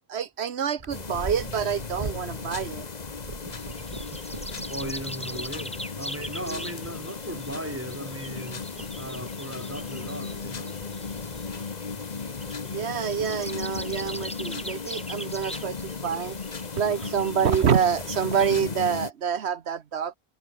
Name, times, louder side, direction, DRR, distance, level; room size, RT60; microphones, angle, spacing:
voice 1, 0.1-2.9 6.5-6.6 12.6-16.4 16.7-20.2, right 7 dB, 90° right, 1.3 m, -27 dB
Purr, 0.8-18.7, right 2 dB, 30° right, 2.1 m, -45 dB
sound 1, 0.9-19.1, left 4 dB, 40° left, 1.3 m, -36 dB
sound 2, 3.5-18.6, equal, 5° left, 3.2 m, -42 dB
voice 2, 4.7-10.8, right 1 dB, 15° right, 5.6 m, -37 dB
omnidirectional pair, 1.1 m